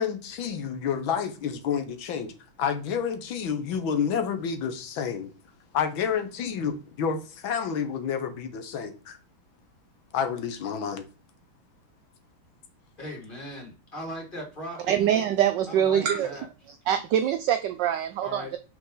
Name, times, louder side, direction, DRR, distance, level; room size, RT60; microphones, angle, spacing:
voice 1, 0.0-2.3 2.6-5.3 5.7-9.2 10.1-11.0, left 7 dB, 70° left, 1.5 m, -29 dB
voice 2, 13.0-15.0 15.7-16.5 18.2-18.5, equal, 25° left, 2.4 m, -38 dB
voice 3, 14.9-16.3 16.9-18.6, right 10 dB, 80° right, 1.0 m, -24 dB
6.0 x 4.2 x 3.8 m
omnidirectional pair, 2.4 m